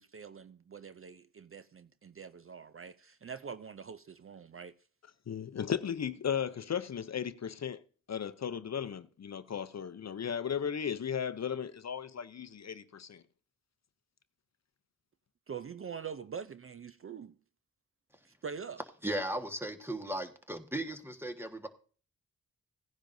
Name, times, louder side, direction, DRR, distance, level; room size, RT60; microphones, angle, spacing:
voice 1, 0.0-4.7 15.5-17.3 18.2-18.8, right 6 dB, 40° right, 0.5 m, -44 dB
voice 2, 5.3-7.8 8.1-13.2, left 8 dB, 50° left, 0.6 m, -36 dB
voice 3, 19.0-21.7, right 1 dB, 5° right, 1.4 m, -36 dB
16.5 x 10.0 x 2.6 m
cardioid pair, 60°, 34 cm